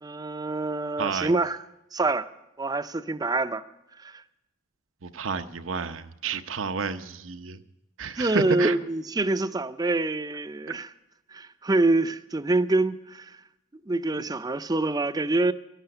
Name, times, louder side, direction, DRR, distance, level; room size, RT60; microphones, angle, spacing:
voice 1, 0.0-1.6 1.9-2.3 2.6-3.6 4.0-4.2 8.2-10.9 11.3-13.4 13.9-15.5, right 2 dB, 20° right, 0.5 m, -26 dB
voice 2, 1.0-1.3 5.0-7.6 8.0-8.8, right 5 dB, 85° right, 0.8 m, -30 dB
12.5 x 12.0 x 7.8 m
head